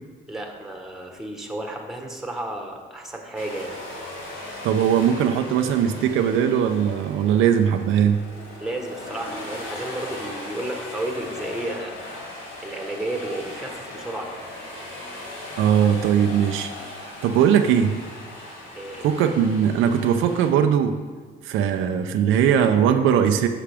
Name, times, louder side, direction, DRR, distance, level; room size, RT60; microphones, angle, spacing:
voice 1, 0.3-3.8 8.6-12.0 12.6-14.4 18.7-19.1 21.4-21.5, right 1 dB, ahead, 2 dB, 1.2 m, -32 dB
sound 1, 3.3-20.5, left 1 dB, 80° left, 2.0 m, -38 dB
voice 2, 4.6-8.2 15.6-16.7 17.2-17.9 19.0-21.0 21.4-23.5, right 8 dB, 90° right, 7 dB, 0.5 m, -20 dB
10.0 x 5.7 x 3.5 m, 1.5 s
cardioid pair, 90°, 20 cm